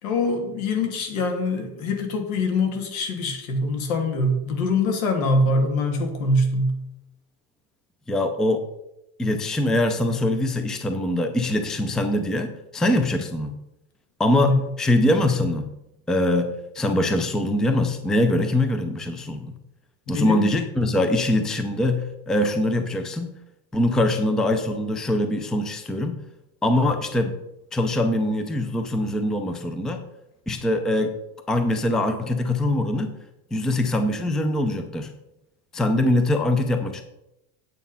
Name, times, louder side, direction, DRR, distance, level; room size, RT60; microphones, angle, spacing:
voice 1, 0.0-6.8 14.4-14.6 20.1-20.5, left 2 dB, 90° left, 4 dB, 2.6 m, -24 dB
voice 2, 8.1-8.6 9.2-13.6 14.2-15.7 16.1-19.6 20.1-23.4 23.7-26.2 26.6-27.4 27.7-30.0 30.5-31.1 31.5-33.2 33.5-35.1 35.7-37.0, left 1 dB, ahead, 7 dB, 0.4 m, -23 dB
9.4 x 7.3 x 5.5 m, 0.88 s
cardioid pair, 170°, 40 cm